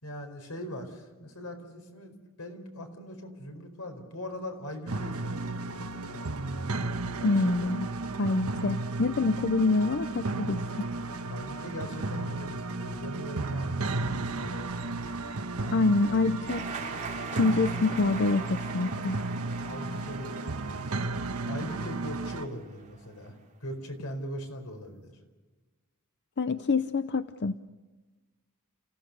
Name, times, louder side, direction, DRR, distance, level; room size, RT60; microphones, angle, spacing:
voice 1, 0.0-6.2 7.2-7.8 11.3-14.7 15.5-16.0 19.6-20.5 21.4-25.1, equal, 80° left, 5 dB, 4.7 m, -41 dB
sound 1, 4.9-22.5, right 2 dB, 75° right, 1.2 m, -34 dB
voice 2, 7.2-7.9 8.2-10.9 15.7-16.6 17.3-19.2 26.4-27.6, left 3 dB, 50° left, 11 dB, 0.6 m, -26 dB
sound 2, 16.5-23.1, right 4 dB, 35° right, 3.1 m, -42 dB
29.5 x 16.0 x 6.7 m, 1.3 s
head